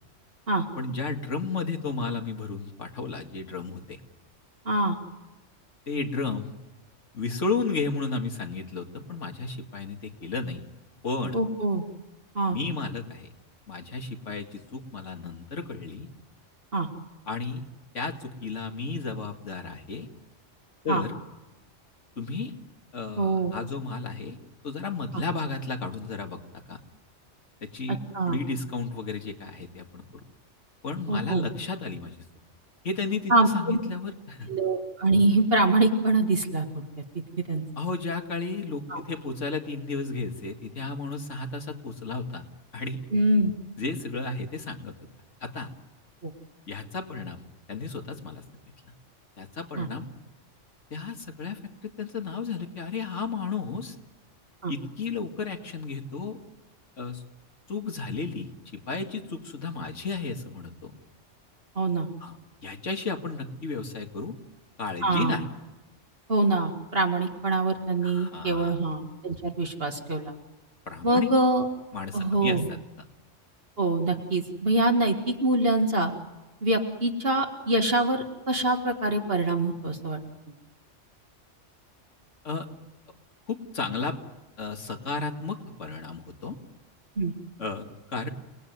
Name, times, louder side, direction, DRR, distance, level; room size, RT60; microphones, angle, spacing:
voice 1, 0.8-4.0 5.9-6.5 7.1-10.6 11.0-11.4 12.5-13.3 13.7-16.1 17.3-17.6 17.9-20.1 20.8-21.1 22.2-22.5 22.9-24.4 24.6-26.4 26.7-26.8 27.6-28.0 28.3-30.2 30.8-32.2 32.8-34.5 37.8-42.5 42.7-43.0 43.8-44.9 45.4-45.7 46.7-47.4 47.7-48.4 49.4-50.1 50.9-54.0 54.7-56.4 57.0-57.2 57.7-61.0 62.2-62.4 62.6-64.3 64.8-65.4 68.0-68.8 70.9-71.3 71.9-72.8 82.4-82.7 83.5-84.2 84.6-86.6 87.6-88.3, left 4 dB, 75° left, 4 dB, 2.4 m, -33 dB
voice 2, 4.7-5.0 11.3-11.8 12.3-12.6 16.7-16.9 20.9-21.0 23.2-23.5 25.1-25.2 27.9-28.4 31.1-31.5 33.3-33.8 34.5-37.0 37.5-37.6 38.9-39.0 43.1-43.5 46.2-46.3 49.8-49.9 54.6-54.7 61.8-62.1 65.0-65.4 66.3-70.3 71.0-71.7 72.1-72.7 73.8-76.1 76.6-80.2 87.2-87.3, right 2 dB, 50° right, 2 dB, 2.2 m, -24 dB
29.5 x 19.5 x 9.4 m, 1.1 s
omnidirectional pair, 1.3 m